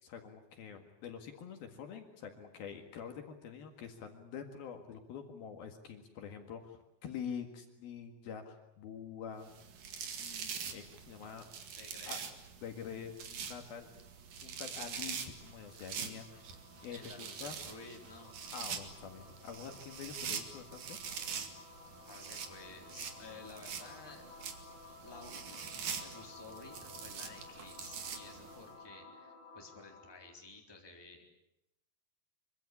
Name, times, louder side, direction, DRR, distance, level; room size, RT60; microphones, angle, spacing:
voice 1, 0.0-9.5 10.2-11.5 12.0-12.2 12.6-13.9 14.4-16.5 16.8-17.6 18.5-21.0, left 7 dB, 65° left, 5 dB, 3.5 m, -46 dB
sound 1, 9.5-28.6, right 7 dB, 55° right, 3.3 m, -44 dB
voice 2, 11.8-12.3 16.9-18.4 22.1-24.3 25.0-31.2, left 3 dB, 5° left, 2 dB, 3.3 m, -53 dB
sound 2, 13.8-30.4, left 3 dB, 45° left, 8.5 m, -56 dB
25.0 x 24.5 x 8.5 m, 0.82 s
omnidirectional pair, 5.0 m